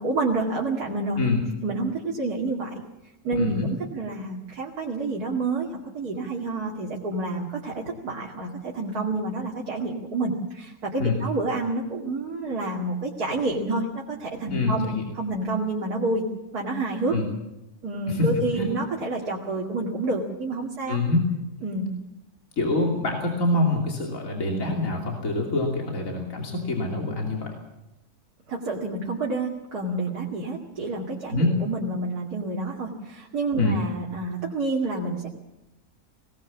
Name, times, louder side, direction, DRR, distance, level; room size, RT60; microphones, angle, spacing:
voice 1, 0.0-1.2 1.6-2.8 3.2-5.7 5.9-14.9 15.1-16.3 16.5-17.2 17.8-21.0 21.6-21.9 28.5-35.3, right 2 dB, 85° right, -2 dB, 2.8 m, -28 dB
voice 2, 14.5-15.0 17.1-17.3 18.1-18.3 18.5-18.7 20.9-21.3 22.6-27.6 31.3-31.5 33.6-33.8, left 2 dB, 60° left, 1 dB, 3.4 m, -25 dB
20.0 x 19.0 x 7.3 m, 0.93 s
omnidirectional pair, 1.6 m